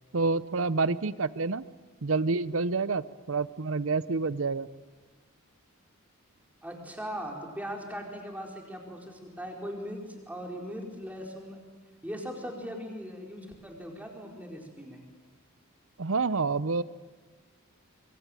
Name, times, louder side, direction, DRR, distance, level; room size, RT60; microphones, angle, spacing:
voice 1, 0.1-1.6 2.0-4.7 16.0-16.8, right 4 dB, 65° right, 17 dB, 0.7 m, -28 dB
voice 2, 6.6-11.6 12.0-15.1, equal, 5° right, 1 dB, 4.4 m, -39 dB
24.5 x 23.5 x 9.2 m, 1.4 s
head